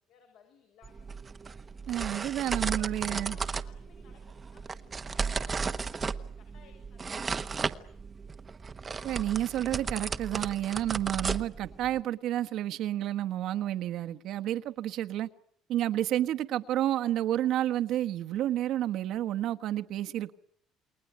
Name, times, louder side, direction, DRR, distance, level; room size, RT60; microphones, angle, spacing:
voice 1, 0.1-1.1 2.5-7.7, left 6 dB, 65° left, 7.2 m, -59 dB
sound 1, 0.8-12.0, right 5 dB, 25° right, 1.1 m, -35 dB
voice 2, 1.9-3.4 9.0-15.3 15.7-20.3, right 12 dB, 60° right, 1.4 m, -30 dB
29.0 x 21.5 x 9.5 m
cardioid pair, 140°, 0 cm